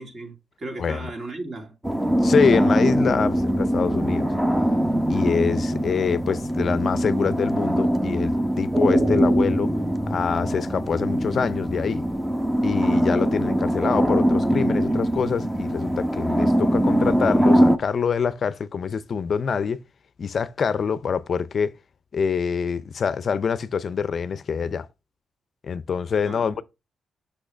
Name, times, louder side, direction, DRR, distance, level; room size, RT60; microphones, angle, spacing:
voice 1, 0.0-1.7 26.2-26.5, right 2 dB, 45° right, 2.8 m, -36 dB
sound 1, 1.8-17.8, equal, 10° right, 0.8 m, -22 dB
voice 2, 2.2-4.3 5.1-9.7 10.1-12.1 12.6-19.8 20.2-21.7 22.1-24.9 25.6-26.6, left 6 dB, 55° left, 0.4 m, -25 dB
6.2 x 5.6 x 3.3 m
cardioid pair, 75°, 0 cm